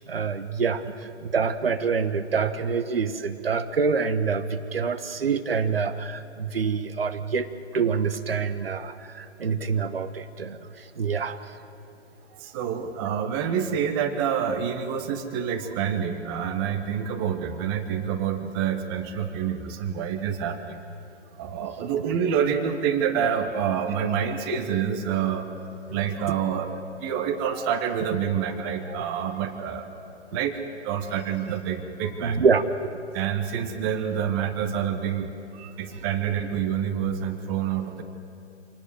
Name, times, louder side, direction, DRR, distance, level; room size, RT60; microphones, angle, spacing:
voice 1, 0.1-11.4 32.2-33.0, right 5 dB, 55° right, 10 dB, 1.2 m, -26 dB
voice 2, 12.4-20.8 21.4-25.5 25.9-29.9 30.3-30.6 30.8-32.4 33.1-38.0, right 8 dB, 20° right, 7 dB, 1.3 m, -27 dB
26.5 x 19.5 x 7.8 m, 2.8 s
figure-of-eight pair, 130°, 35 cm